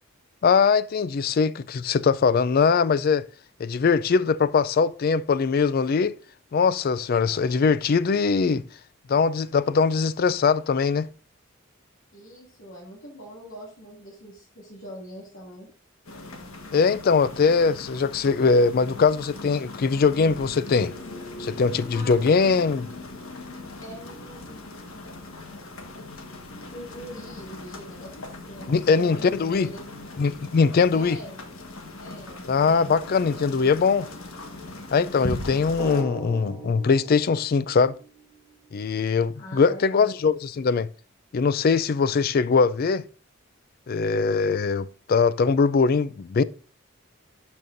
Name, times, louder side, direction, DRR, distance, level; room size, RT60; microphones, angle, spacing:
voice 1, 0.4-3.3 3.6-6.2 6.5-8.6 9.1-11.1 16.7-20.9 21.4-22.9 28.7-29.7 30.2-31.2 32.5-34.1 34.9-37.9 38.7-40.9 41.3-43.0 43.9-46.4, left 5 dB, 45° left, 0.3 m, -21 dB
voice 2, 12.1-15.7 21.9-22.7 23.8-24.6 26.7-29.8 30.9-31.3 32.0-32.9 33.4-33.7 39.3-40.1, equal, 70° left, 2.5 m, -43 dB
sound 1, 16.1-36.0, left 2 dB, 90° left, 1.4 m, -39 dB
Drum, 35.8-38.4, equal, 15° right, 1.4 m, -38 dB
12.0 x 5.3 x 2.6 m
head